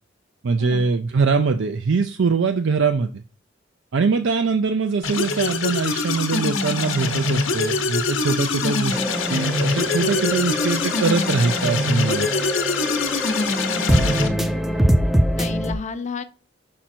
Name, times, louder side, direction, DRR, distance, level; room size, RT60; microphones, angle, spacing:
voice 1, 0.4-3.2 3.9-9.0 9.3-12.3, right 4 dB, 65° right, 8 dB, 0.5 m, -22 dB
sound 1, 5.0-14.3, left 3 dB, 75° left, 1.0 m, -23 dB
sound 2, 8.9-15.7, equal, ahead, 0.5 m, -24 dB
voice 2, 13.7-14.8 15.3-16.2, left 4 dB, 35° left, 10 dB, 0.6 m, -33 dB
5.8 x 5.0 x 4.4 m, 0.35 s
head